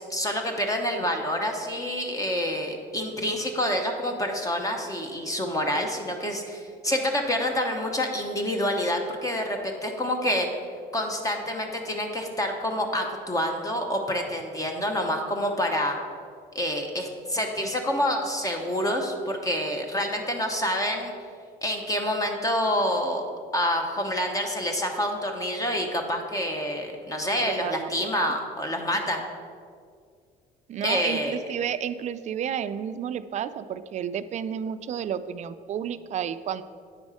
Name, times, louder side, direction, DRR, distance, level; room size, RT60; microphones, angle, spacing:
voice 1, 0.1-10.5 10.9-16.0 16.5-21.1 21.6-23.2 23.5-29.2 30.8-31.4, equal, 20° left, 3 dB, 0.9 m, -27 dB
voice 2, 27.4-28.3 30.7-36.6, right 9 dB, 45° right, 13 dB, 0.4 m, -31 dB
8.9 x 5.3 x 4.9 m, 2.2 s
cardioid pair, 110°, 17 cm